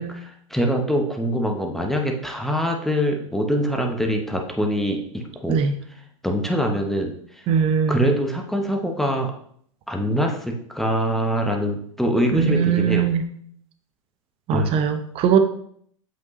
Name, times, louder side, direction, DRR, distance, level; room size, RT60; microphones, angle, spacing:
voice 1, 0.0-5.6 6.2-7.5 7.9-9.3 9.9-13.1 14.5-14.7, equal, ahead, 2 dB, 0.8 m, -24 dB
voice 2, 7.5-8.1 12.3-13.2 14.5-15.4, right 7 dB, 35° right, 8 dB, 0.8 m, -20 dB
8.0 x 5.3 x 3.1 m, 0.63 s
hypercardioid pair, 110°, 17 cm